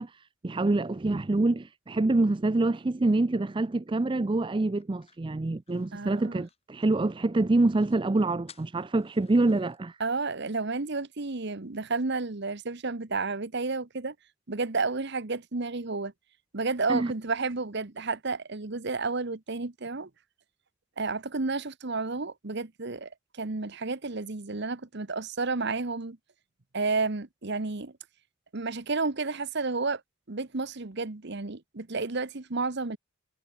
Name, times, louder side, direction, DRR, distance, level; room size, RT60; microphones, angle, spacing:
voice 1, 0.0-10.0 16.9-17.1, right 2 dB, 25° right, 0.4 m, -26 dB
sound 1, 4.8-7.1 7.4-7.5 7.7-8.0 8.5-9.8, left 7 dB, 30° left, 4.7 m, -57 dB
voice 2, 5.9-6.5 10.0-14.1 14.5-16.1 16.5-20.1 21.0-23.1 23.4-26.2 26.7-27.9 28.5-30.0 30.3-33.0, right 3 dB, 55° right, 1.1 m, -31 dB
head